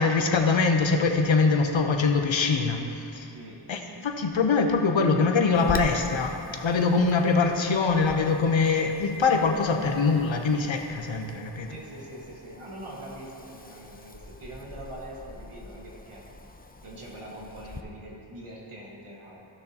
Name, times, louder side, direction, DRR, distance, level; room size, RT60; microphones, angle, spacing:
voice 1, 0.0-3.3 3.7-11.7, left 4 dB, 65° left, 4 dB, 0.9 m, -23 dB
voice 2, 3.3-3.7 11.7-16.3 16.8-19.4, right 1 dB, 80° right, -3 dB, 1.7 m, -43 dB
Wind, 5.5-17.8, left 2 dB, 20° left, 0.6 m, -43 dB
14.5 x 6.5 x 2.9 m, 2.9 s
wide cardioid pair, 50°, 50 cm